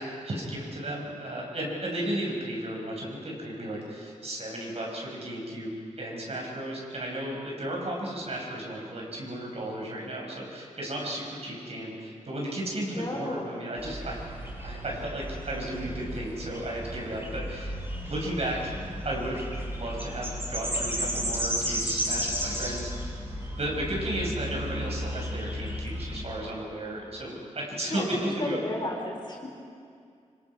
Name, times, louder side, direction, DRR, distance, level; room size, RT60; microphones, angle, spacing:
voice 1, 0.0-14.2 14.6-17.8 18.1-18.6 19.0-23.2 23.6-28.6, right 1 dB, 55° right, -2 dB, 5.6 m, -34 dB
voice 2, 12.9-13.5 27.9-28.1 28.4-29.5, left 1 dB, 35° left, 0 dB, 4.0 m, -33 dB
sound 1, 13.8-26.2, equal, 20° right, 7.1 m, -34 dB
25.5 x 25.5 x 4.8 m, 2.3 s
wide cardioid pair, 105°, 12 cm